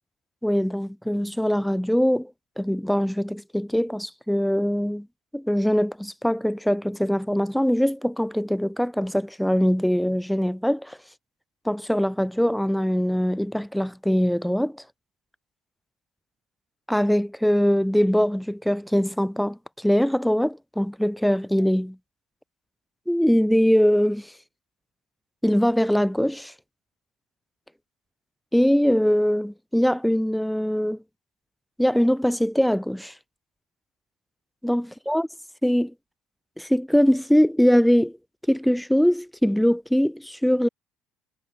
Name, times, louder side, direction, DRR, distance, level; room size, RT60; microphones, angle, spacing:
voice 1, 0.4-2.3 2.6-5.1 5.3-11.0 11.6-14.8 16.9-22.0 23.1-24.3 25.4-26.5 28.5-31.0 31.8-33.1 34.6-35.3 35.6-35.9 36.6-38.2 38.5-40.7, equal, ahead, 0.8 m, -22 dB
cardioid pair, 120°, 0 cm